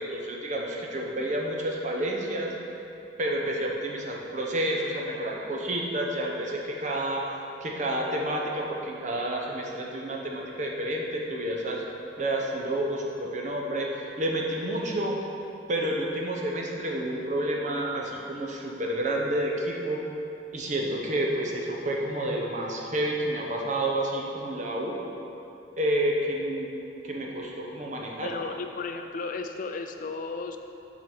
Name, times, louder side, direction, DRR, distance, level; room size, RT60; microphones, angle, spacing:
voice 1, 0.0-2.5 3.2-11.8 12.2-15.2 15.7-20.0 20.5-25.0 25.8-26.7 27.0-28.3, right 1 dB, 40° right, -1 dB, 0.9 m, -29 dB
voice 2, 28.2-30.6, left 4 dB, 45° left, 6 dB, 0.4 m, -34 dB
7.4 x 4.0 x 6.0 m, 2.8 s
head